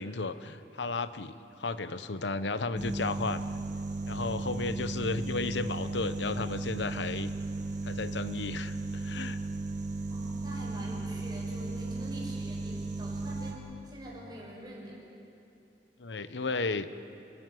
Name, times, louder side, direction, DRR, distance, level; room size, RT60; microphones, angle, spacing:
voice 1, 0.0-3.4 4.1-7.3 7.8-9.4 16.0-16.9, left 3 dB, 85° left, 12 dB, 0.9 m, -33 dB
sound 1, 2.8-13.5, right 2 dB, 45° right, 2.3 m, -35 dB
voice 2, 10.1-15.0, right 1 dB, 25° right, -4 dB, 6.6 m, -45 dB
29.0 x 14.0 x 9.8 m, 2.8 s
head